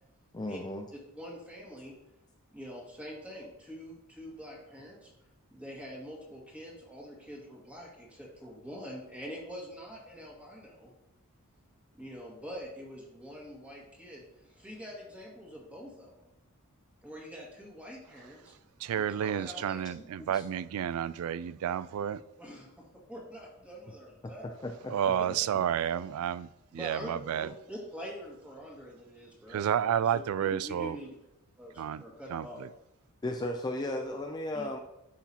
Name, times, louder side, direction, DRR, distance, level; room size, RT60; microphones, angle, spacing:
voice 1, 0.3-0.9 20.3-20.4 24.4-25.4 30.5-30.6 33.2-34.8, left 1 dB, 20° left, 4 dB, 0.4 m, -36 dB
voice 2, 1.1-1.9 2.5-5.1 5.5-10.9 12.0-16.2 17.0-18.5 18.9-19.8 22.4-24.4 25.2-25.3 26.7-31.1 31.6-32.6 34.5-34.8, equal, 5° right, -3 dB, 1.9 m, -45 dB
voice 3, 18.8-22.2 24.9-27.5 29.5-31.0 31.8-32.0 32.3-32.5, right 9 dB, 75° right, 17 dB, 0.3 m, -30 dB
10.0 x 6.0 x 2.9 m, 0.88 s
head